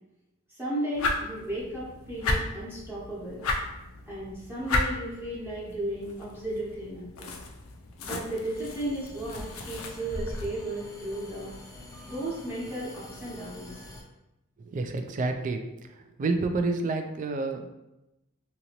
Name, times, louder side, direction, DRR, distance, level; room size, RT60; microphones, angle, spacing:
voice 1, 0.5-3.5 4.1-7.3 8.0-11.5 12.1-13.8, right 1 dB, 10° right, -8 dB, 0.9 m, -34 dB
sound 1, 0.9-10.5, left 2 dB, 90° left, 0.4 m, -34 dB
sound 2, 8.5-14.0, left 1 dB, 15° left, 0.5 m, -47 dB
voice 2, 14.7-15.6 16.2-17.7, right 3 dB, 40° right, 6 dB, 0.3 m, -28 dB
2.8 x 2.7 x 2.9 m, 0.93 s
head